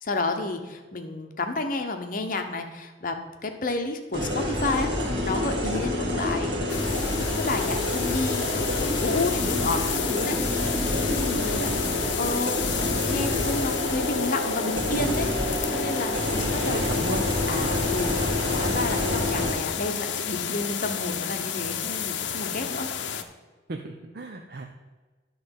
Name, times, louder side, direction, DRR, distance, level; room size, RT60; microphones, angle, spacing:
voice 1, 0.0-3.2 3.4-6.9 7.2-10.7 11.0-12.6 13.1-17.2 17.5-22.9, left 2 dB, 50° left, 5 dB, 1.0 m, -31 dB
sound 1, 4.1-19.5, left 1 dB, 85° right, 1.9 m, -27 dB
sound 2, 6.7-23.2, left 8 dB, 80° left, 0.7 m, -31 dB
voice 2, 11.3-12.0 16.5-17.5 23.7-24.6, right 2 dB, 60° right, 3 dB, 0.6 m, -36 dB
10.5 x 4.0 x 7.1 m, 1.3 s
head